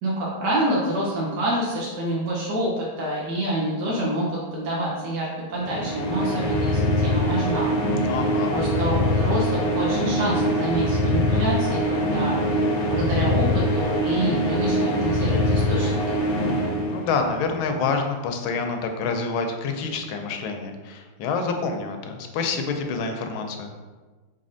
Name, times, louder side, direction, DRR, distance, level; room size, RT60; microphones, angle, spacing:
voice 1, 0.0-7.7 8.1-8.2 8.5-16.2, right 1 dB, 65° right, -5 dB, 1.2 m, -27 dB
sound 1, 5.6-17.4, equal, 65° left, 0.9 m, -23 dB
voice 2, 8.1-8.5 16.9-23.7, left 4 dB, 80° left, 5 dB, 1.4 m, -27 dB
4.2 x 3.9 x 2.6 m, 1.3 s
omnidirectional pair, 2.2 m